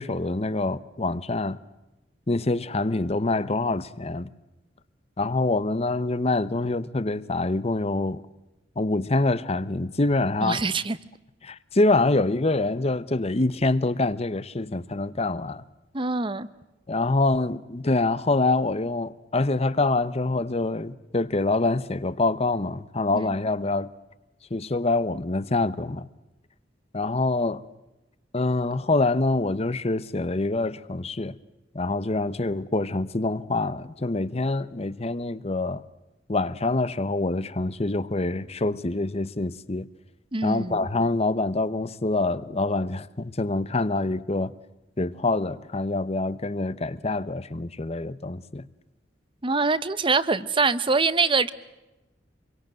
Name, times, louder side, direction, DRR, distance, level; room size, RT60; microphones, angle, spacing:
voice 1, 0.0-1.6 2.3-4.3 5.2-8.2 8.8-10.6 11.4-15.6 16.9-23.9 24.5-26.1 26.9-27.6 28.3-31.4 31.7-35.8 36.3-39.9 40.4-44.5 45.0-48.7, left 2 dB, 35° left, 0.9 m, -25 dB
voice 2, 10.4-11.0 15.9-16.5 23.1-23.3 40.3-40.9 49.4-51.5, right 4 dB, 25° right, 0.9 m, -24 dB
27.5 x 23.0 x 7.7 m
head